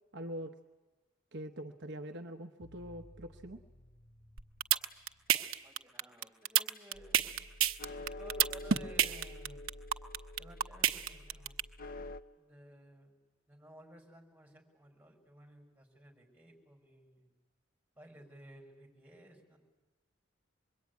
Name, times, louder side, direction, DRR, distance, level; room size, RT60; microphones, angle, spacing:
voice 1, 0.1-0.6 1.3-3.6, equal, 60° right, 5 dB, 1.0 m, -43 dB
sound 1, 2.6-5.7, equal, 60° left, 4.0 m, -59 dB
sound 2, 4.4-11.6, right 10 dB, 85° right, 1.0 m, -28 dB
voice 2, 5.3-7.5 8.0-9.6 10.4-11.6 12.4-13.1 13.5-17.3 18.0-19.6, right 1 dB, 10° right, 1 dB, 5.5 m, -56 dB
sound 3, 6.9-12.2, left 1 dB, 45° left, 0.8 m, -47 dB
26.0 x 22.0 x 9.5 m, 1.2 s
head